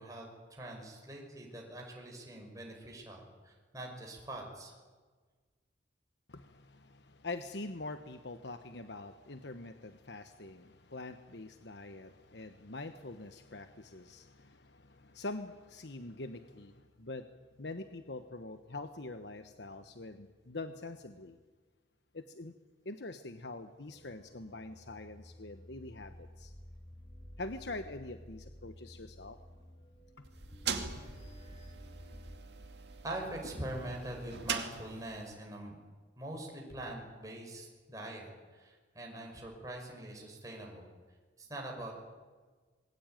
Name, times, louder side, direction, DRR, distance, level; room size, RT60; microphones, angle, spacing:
voice 1, 0.0-4.7 33.0-35.8 36.2-40.9 41.4-42.0, right 1 dB, 20° right, 0 dB, 5.5 m, -43 dB
voice 2, 6.3-17.3 17.6-21.4 22.1-22.5 22.8-26.5 27.4-29.4, left 2 dB, 65° left, 8 dB, 1.2 m, -44 dB
sound 1, 23.8-32.4, left 1 dB, 30° left, 4.2 m, -53 dB
sound 2, 30.2-35.3, right 6 dB, 60° right, 2.6 m, -41 dB
27.0 x 21.5 x 9.2 m, 1.4 s
head